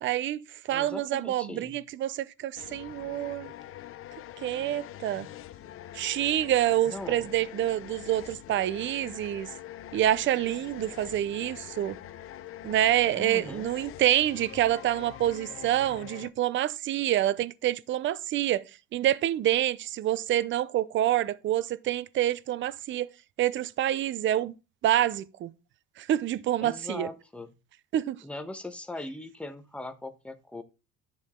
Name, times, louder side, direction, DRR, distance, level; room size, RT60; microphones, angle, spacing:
voice 1, 0.0-3.5 4.4-5.3 5.9-9.5 9.9-12.0 12.6-18.6 18.9-23.1 23.4-24.5 24.8-25.5 26.0-27.1 27.9-28.2, right 12 dB, 40° right, 0.6 m, -27 dB
voice 2, 0.7-1.7 6.8-7.3 13.2-13.7 26.6-27.5 28.2-30.6, left 2 dB, 5° left, 1.1 m, -40 dB
sound 1, 2.6-16.3, left 12 dB, 45° left, 0.8 m, -44 dB
11.0 x 6.5 x 3.7 m
cardioid pair, 120°, 30 cm